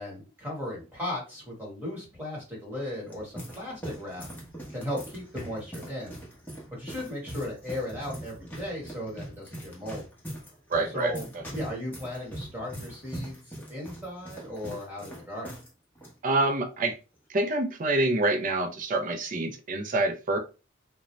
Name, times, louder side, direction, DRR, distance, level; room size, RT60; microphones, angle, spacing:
voice 1, 0.0-4.2 4.7-6.2 6.7-10.0 10.8-11.2 11.5-15.5, left 1 dB, 10° right, -4 dB, 1.3 m, -36 dB
sound 1, 2.9-15.7 15.9-16.1 16.8-17.1, right 1 dB, 10° left, 0.8 m, -42 dB
voice 2, 10.7-11.4 16.2-16.9 17.3-20.4, right 2 dB, 45° right, 5 dB, 0.5 m, -27 dB
2.5 x 2.1 x 3.0 m, 0.31 s
head